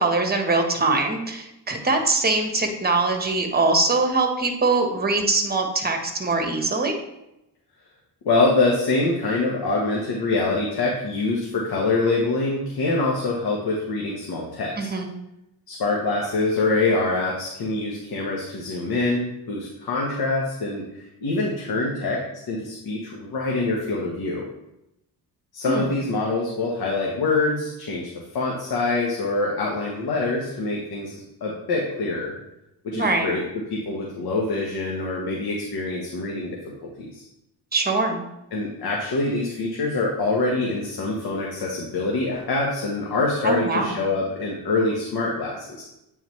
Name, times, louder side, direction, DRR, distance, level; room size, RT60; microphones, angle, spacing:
voice 1, 0.0-7.0 14.8-15.2 25.6-25.9 32.9-33.4 37.7-38.2 43.4-44.0, right 3 dB, 20° right, 4 dB, 1.3 m, -22 dB
voice 2, 8.2-14.9 15.7-22.2 22.5-24.4 25.5-32.4 32.8-33.4 33.7-36.6 37.0-37.2 38.5-45.8, left 3 dB, 60° left, -2 dB, 1.4 m, -25 dB
8.7 x 3.9 x 3.2 m, 0.87 s
cardioid pair, 75°, 42 cm